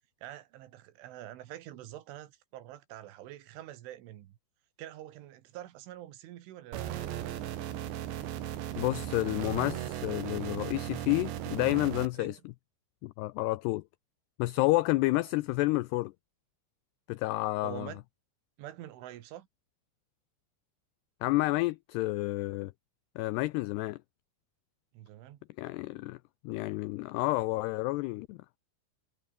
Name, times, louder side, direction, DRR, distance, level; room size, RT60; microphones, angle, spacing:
voice 1, 0.2-4.4 4.8-7.6 12.2-12.4 17.6-18.0 18.6-19.5 24.9-25.4, right 13 dB, 90° right, 4.2 m, -46 dB
sound 1, 6.7-12.1, right 11 dB, 70° right, 4.1 m, -37 dB
voice 2, 8.8-12.4 13.0-13.8 14.4-16.1 17.1-17.9 21.2-22.7 23.2-24.0 25.6-26.2 26.4-28.4, left 20 dB, 90° left, 2.3 m, -30 dB
omnidirectional pair, 5.4 m